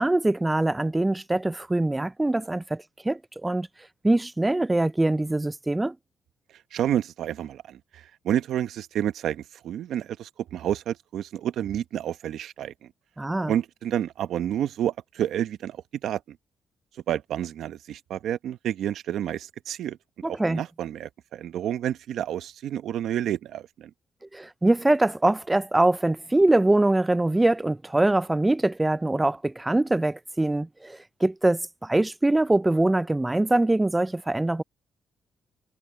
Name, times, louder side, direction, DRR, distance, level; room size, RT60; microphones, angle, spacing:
voice 1, 0.0-3.7 4.0-5.9 13.2-13.5 20.2-20.6 24.3-34.6, right 2 dB, 15° right, 0.3 m, -23 dB
voice 2, 6.7-12.9 13.5-15.8 16.0-16.4 17.1-20.0 20.2-23.9, right 10 dB, 75° right, 0.8 m, -29 dB
cardioid pair, 90°, 0 cm